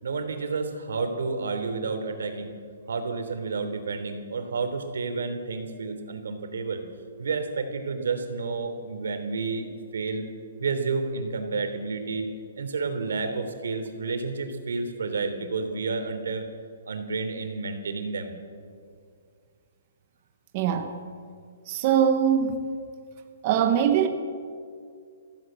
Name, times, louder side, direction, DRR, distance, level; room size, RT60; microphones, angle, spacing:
voice 1, 0.0-2.5 2.9-6.8 7.2-10.3 10.6-12.3 12.6-16.4 16.8-18.3, right 4 dB, 85° right, 3.3 m, -30 dB
voice 2, 20.5-20.9 21.7-22.6 23.4-24.1, right 8 dB, 25° right, 0.9 m, -22 dB
24.5 x 16.0 x 7.6 m
hypercardioid pair, 180°, 0 cm